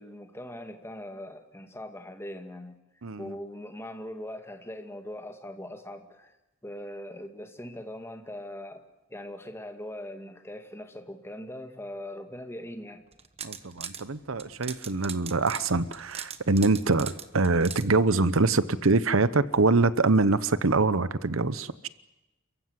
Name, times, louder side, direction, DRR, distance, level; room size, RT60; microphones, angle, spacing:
voice 1, 0.0-2.8 3.2-6.4 6.6-8.8 9.1-13.0, left 1 dB, 10° left, 5 dB, 2.2 m, -41 dB
voice 2, 3.0-3.3 13.4-21.9, right 3 dB, 65° right, 15 dB, 0.9 m, -24 dB
sound 1, 13.1-14.0 14.4-17.8, right 8 dB, 30° right, 1.1 m, -39 dB
29.0 x 15.0 x 9.8 m, 0.97 s
head